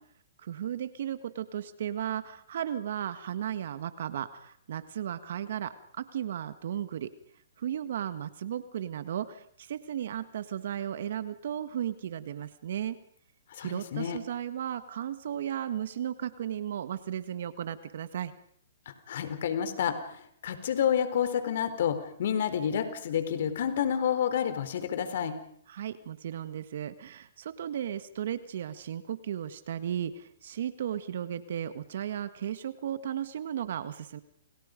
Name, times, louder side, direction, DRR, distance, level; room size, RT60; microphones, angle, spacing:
voice 1, 0.4-7.1 7.6-13.0 13.6-18.3 25.7-34.2, right 10 dB, 60° right, 12 dB, 1.6 m, -35 dB
voice 2, 13.5-14.2 18.9-25.4, left 8 dB, 60° left, 10 dB, 4.1 m, -29 dB
29.5 x 29.0 x 5.3 m, 0.63 s
hypercardioid pair, 145°, 0 cm